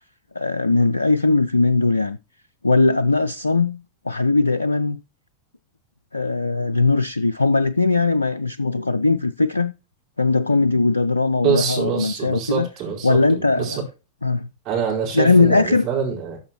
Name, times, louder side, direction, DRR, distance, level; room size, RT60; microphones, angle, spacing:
voice 1, 0.4-2.2 2.6-5.0 6.1-9.7 10.2-12.7 13.0-13.8 14.2-14.5 15.1-15.9, left 3 dB, 80° left, 0.3 m, -19 dB
voice 2, 11.4-13.8 14.6-16.4, right 7 dB, 40° right, 4.3 m, -25 dB
12.5 x 5.8 x 3.0 m
figure-of-eight pair, 90°, 0 cm